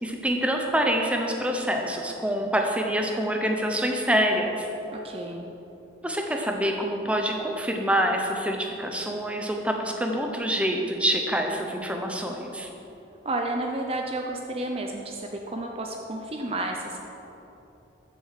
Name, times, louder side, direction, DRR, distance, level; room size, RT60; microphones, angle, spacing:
voice 1, 0.0-4.7 6.0-12.7, equal, 5° right, 2 dB, 0.9 m, -26 dB
voice 2, 4.9-5.5 13.2-17.0, right 2 dB, 30° right, 2 dB, 0.7 m, -31 dB
13.5 x 7.6 x 5.8 m, 3.0 s
head